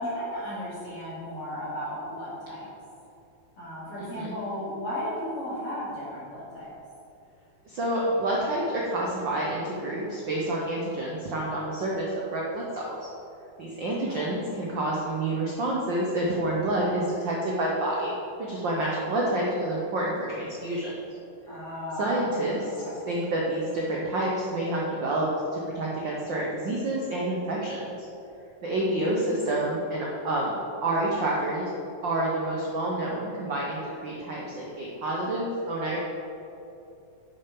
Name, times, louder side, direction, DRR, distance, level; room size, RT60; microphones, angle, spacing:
voice 1, 0.0-2.7 3.6-6.7 14.1-14.8 21.5-23.0 29.0-29.6, equal, 50° left, -11 dB, 3.2 m, -35 dB
voice 2, 4.0-4.3 7.7-13.1 13.6-20.9 22.0-27.8 28.6-31.7 32.0-36.0, right 1 dB, 70° right, -4 dB, 1.1 m, -28 dB
7.3 x 6.7 x 5.9 m, 2.8 s
omnidirectional pair, 3.5 m